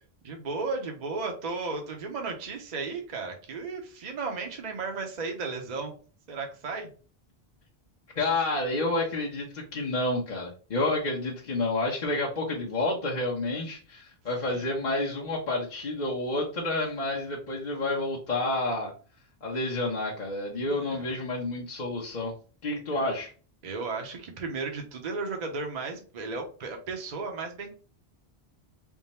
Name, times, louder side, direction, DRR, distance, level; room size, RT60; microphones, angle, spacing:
voice 1, 0.2-5.9 6.3-6.9 14.5-14.7 20.6-21.1 23.6-27.8, right 4 dB, 45° right, 2 dB, 0.8 m, -34 dB
voice 2, 8.1-18.9 19.4-22.3 22.6-23.3, left 2 dB, 45° left, -4 dB, 1.0 m, -29 dB
3.6 x 2.1 x 4.1 m, 0.38 s
omnidirectional pair, 1.0 m